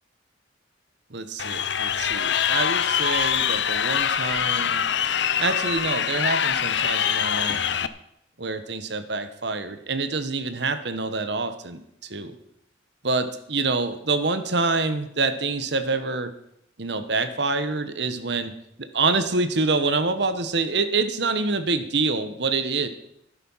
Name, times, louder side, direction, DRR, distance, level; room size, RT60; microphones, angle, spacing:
voice 1, 1.1-4.8 5.4-7.6 8.4-12.3 13.0-16.3 16.8-18.5 18.8-22.9, right 3 dB, 65° right, 11 dB, 1.2 m, -26 dB
Crowd, 1.4-7.9, left 8 dB, 65° left, 0.7 m, -24 dB
12.5 x 11.0 x 5.7 m, 0.76 s
head